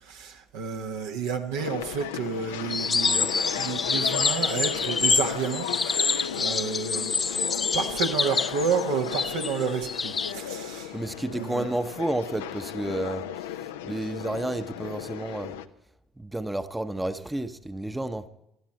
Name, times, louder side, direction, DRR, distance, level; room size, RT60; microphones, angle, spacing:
voice 1, 0.0-7.2 7.7-11.0 11.3-11.7, right 6 dB, 70° right, 3 dB, 1.5 m, -31 dB
sound 1, 1.6-15.7, left 10 dB, 75° left, 0.6 m, -35 dB
sound 2, 2.7-10.3, left 5 dB, 30° left, 0.5 m, -27 dB
voice 2, 10.9-15.6 16.2-18.3, right 1 dB, 10° right, 10 dB, 1.0 m, -31 dB
20.0 x 13.0 x 4.5 m, 0.81 s
figure-of-eight pair, 55°, 0 cm